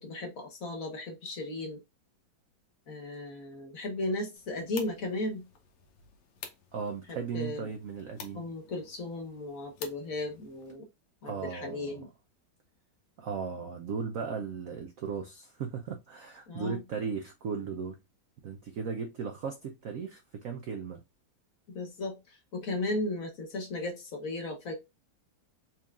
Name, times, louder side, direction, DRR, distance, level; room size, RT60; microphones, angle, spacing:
voice 1, 0.0-1.8 2.9-5.4 7.1-7.7 8.3-10.8 11.2-12.1 16.5-16.8 21.7-24.7, left 2 dB, 50° left, 1.2 m, -36 dB
sound 1, 4.4-10.7, left 7 dB, 80° left, 1.6 m, -50 dB
voice 2, 6.7-8.5 11.2-12.0 13.2-18.0 18.4-21.0, right 6 dB, 85° right, 0.7 m, -37 dB
4.4 x 3.5 x 2.4 m
omnidirectional pair, 2.2 m